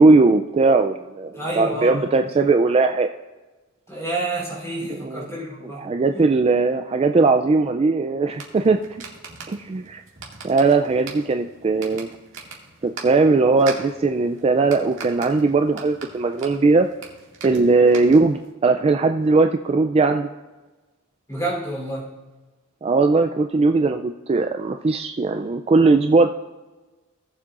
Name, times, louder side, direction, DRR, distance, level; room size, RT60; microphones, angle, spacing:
voice 1, 0.0-3.1 5.0-5.3 5.8-8.8 9.5-10.0 10.4-12.1 12.8-16.9 17.4-20.3 22.8-26.3, right 3 dB, 30° right, 6 dB, 0.3 m, -19 dB
voice 2, 1.3-2.5 3.9-5.8 6.1-6.2 21.3-22.2, right 2 dB, 15° left, -4 dB, 3.4 m, -29 dB
sound 1, 8.3-18.5, right 4 dB, 65° right, 2.0 m, -41 dB
18.5 x 7.3 x 2.5 m, 1.2 s
head